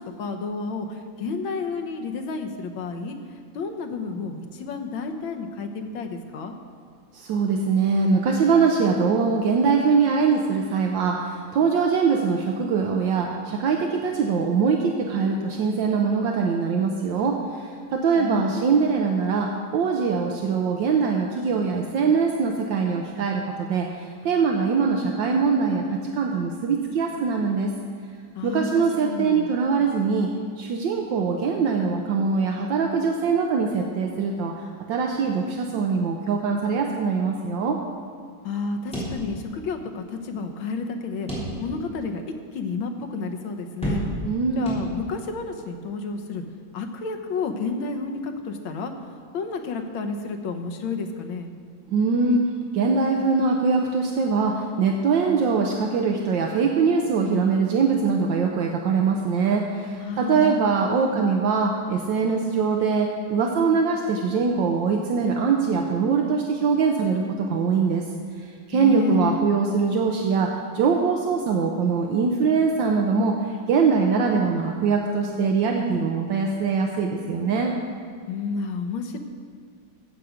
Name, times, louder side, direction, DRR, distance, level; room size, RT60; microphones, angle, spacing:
voice 1, 0.0-3.2 3.5-6.5 18.2-18.5 28.3-29.5 38.4-41.3 41.6-42.2 42.5-44.0 44.6-46.4 46.7-48.9 49.3-51.5 60.0-60.6 60.9-61.2 68.7-69.4 78.3-79.2, left 4 dB, 85° left, 4 dB, 1.7 m, -31 dB
voice 2, 7.1-17.4 17.9-27.7 28.4-30.3 30.6-37.8 44.2-44.8 51.9-52.4 52.7-68.0 68.7-73.4 73.7-77.7, right 5 dB, 75° right, 2 dB, 1.4 m, -22 dB
sound 1, 38.9-39.8 40.1-40.2 41.3-41.9 42.4-42.5 43.8-44.4 44.7-45.3, equal, 5° left, 3.4 m, -30 dB
14.5 x 8.1 x 5.0 m, 2.1 s
omnidirectional pair, 2.1 m